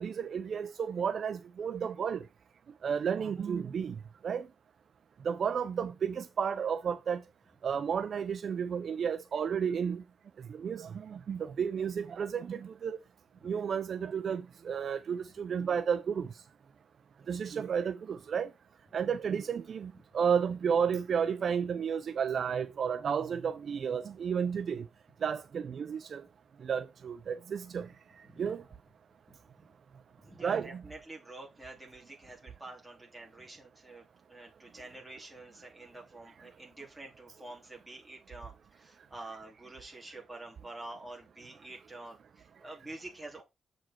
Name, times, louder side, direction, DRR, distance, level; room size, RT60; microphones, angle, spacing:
voice 1, 0.0-2.2 2.8-4.0 4.2-4.5 5.2-7.2 7.6-10.0 10.5-13.0 13.4-16.3 17.3-18.5 18.9-24.8 25.2-26.2 26.6-27.9 28.4-28.6 30.4-30.8, right 7 dB, 55° right, 0.5 m, -32 dB
voice 2, 29.3-29.7 30.2-43.4, right 2 dB, 5° right, 2.9 m, -48 dB
7.5 x 5.1 x 4.3 m
wide cardioid pair, 150°, 0 cm